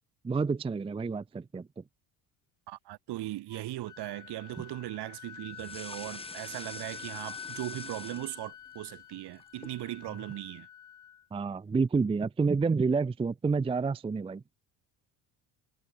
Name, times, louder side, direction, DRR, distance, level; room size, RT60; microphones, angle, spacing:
voice 1, 0.2-1.8 11.3-14.4, right 4 dB, 15° right, 0.5 m, -29 dB
voice 2, 2.7-10.7, right 16 dB, 60° right, 1.9 m, -39 dB
Wind instrument woodwind instrument, 3.5-11.3, left 9 dB, 40° left, 2.4 m, -47 dB
sound 1, 5.5-8.8 9.1-9.8, left 2 dB, 10° left, 4.7 m, -46 dB
supercardioid pair, 85°, 45 cm